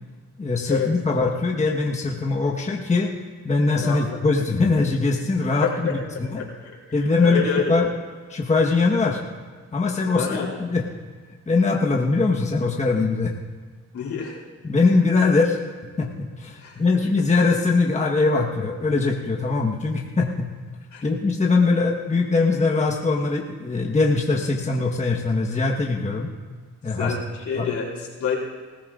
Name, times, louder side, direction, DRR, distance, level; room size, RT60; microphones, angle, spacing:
voice 1, 0.4-3.1 3.4-6.0 6.3-6.5 6.9-7.9 8.3-9.2 9.7-10.8 11.5-13.3 14.6-15.6 16.0-20.5 21.0-26.3 26.8-27.1 27.5-27.7, left 3 dB, 25° left, 0 dB, 1.3 m, -21 dB
voice 2, 3.8-4.2 5.6-5.9 6.4-6.8 7.2-7.7 10.1-10.5 13.9-14.4 16.6-16.8 20.9-21.0 27.0-28.4, left 6 dB, 70° left, -2 dB, 3.5 m, -27 dB
20.0 x 15.0 x 2.5 m, 1.5 s
cardioid pair, 90°, 30 cm